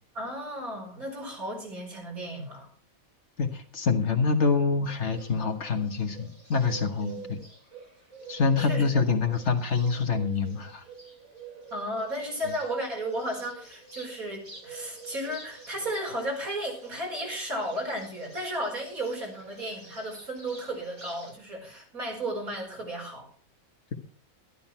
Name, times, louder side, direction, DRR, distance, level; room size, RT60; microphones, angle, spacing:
voice 1, 0.2-2.7 7.0-7.3 8.6-9.1 11.7-23.3, right 1 dB, 80° right, 0 dB, 5.3 m, -34 dB
voice 2, 3.4-7.4 8.3-10.8, left 4 dB, 55° left, 5 dB, 1.7 m, -26 dB
Bird, 4.8-21.3, right 5 dB, 45° right, 5.1 m, -48 dB
13.0 x 11.5 x 4.4 m, 0.43 s
omnidirectional pair, 1.5 m